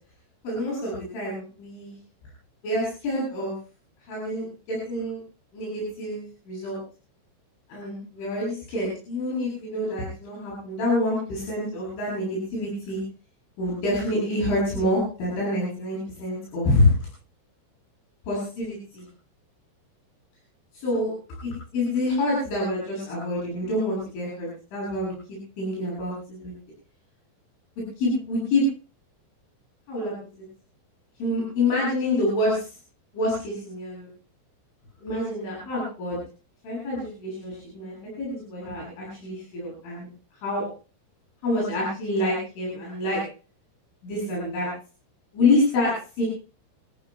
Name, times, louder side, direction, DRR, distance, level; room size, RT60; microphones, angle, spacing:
voice 1, 0.4-2.0 2.6-3.5 4.1-5.2 5.5-6.8 7.7-13.0 13.6-17.0 18.3-19.1 20.8-21.1 21.4-26.5 28.0-28.7 29.9-30.1 31.2-32.7 33.1-34.1 35.0-36.2 36.6-40.1 40.4-40.6 41.4-43.2 44.0-44.7 45.3-46.3, left 1 dB, 75° left, -5 dB, 10.5 m, -27 dB
28.5 x 15.5 x 2.3 m, 0.36 s
omnidirectional pair, 5.5 m